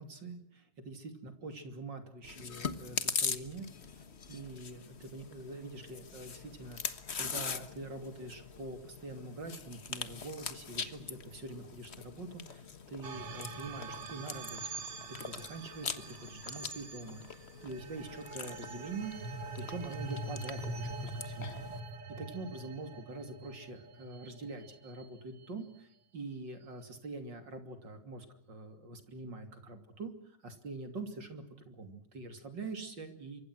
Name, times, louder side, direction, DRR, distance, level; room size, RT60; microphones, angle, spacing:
voice 1, 0.0-12.6 12.9-14.8 15.1-21.5 22.2-33.4, right 3 dB, 40° right, 7 dB, 3.3 m, -45 dB
Chewing mastication, 2.2-21.8, left 5 dB, 55° left, 0.7 m, -42 dB
sound 1, 13.0-25.5, right 2 dB, 55° right, 3.0 m, -44 dB
28.0 x 24.5 x 6.2 m, 0.71 s
omnidirectional pair, 3.3 m